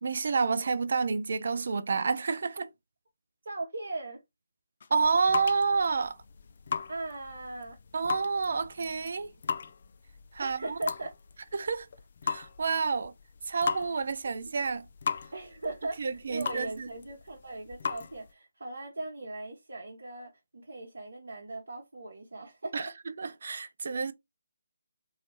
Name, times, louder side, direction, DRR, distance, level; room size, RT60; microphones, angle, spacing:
voice 1, 0.0-2.7 4.9-6.2 7.9-9.3 10.3-10.8 11.5-11.9 12.2-13.1 13.5-14.9 16.0-16.9 22.7-22.9 23.2-24.1, right 4 dB, 55° right, 0.4 m, -29 dB
voice 2, 3.4-4.2 6.9-7.8 10.4-11.1 11.4-11.5 14.3-14.4 15.3-22.9, right 2 dB, 70° right, 0.9 m, -39 dB
sound 1, 4.8-18.3, left 6 dB, 45° left, 0.3 m, -38 dB
3.1 x 2.7 x 2.9 m
figure-of-eight pair, 150°, 0 cm